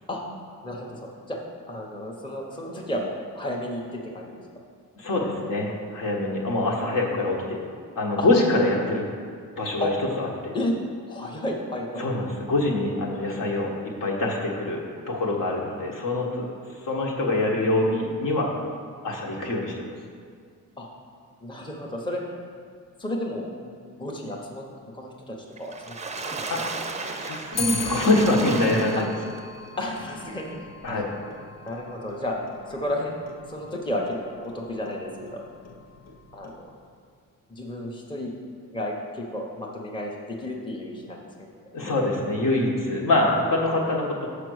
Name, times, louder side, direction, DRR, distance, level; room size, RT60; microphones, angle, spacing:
voice 1, 0.6-1.4 1.7-4.4 8.2-8.3 8.8-8.9 9.8-9.9 10.5-10.8 11.1-12.1 20.8-20.9 21.4-22.2 23.0-24.6 24.9-26.0 26.3-26.8 29.0-29.1 29.8-30.6 30.9-31.0 31.7-32.4 32.7-33.2 33.5-35.4 36.3-36.5 37.5-38.3 38.7-41.5, left 1 dB, 15° left, -1 dB, 0.9 m, -32 dB
voice 2, 5.0-7.6 8.0-9.0 9.6-9.9 10.2-10.5 12.0-16.5 16.8-18.5 19.0-19.7 26.5-26.6 27.0-29.1 30.8-31.1 41.7-44.3, left 2 dB, 65° left, -1 dB, 1.4 m, -24 dB
Water / Splash splatter, 25.6-29.4 30.0-30.1 30.4-30.5, right 3 dB, 20° right, 0.5 m, -34 dB
Clock, 27.5-36.9, left 4 dB, 50° left, 0.8 m, -39 dB
5.9 x 5.0 x 6.3 m, 2.1 s
cardioid pair, 110°, 34 cm